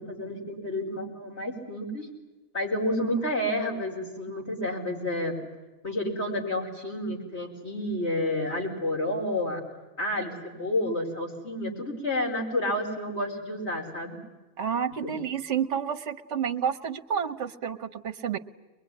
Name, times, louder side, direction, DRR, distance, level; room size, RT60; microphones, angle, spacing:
voice 1, 0.0-2.1 2.5-5.4 5.8-9.6 10.0-14.2 15.0-15.2, left 1 dB, 55° left, -1 dB, 5.1 m, -30 dB
voice 2, 14.6-18.4, right 8 dB, 60° right, 6 dB, 1.3 m, -30 dB
22.5 x 22.5 x 9.9 m, 1.1 s
omnidirectional pair, 1.4 m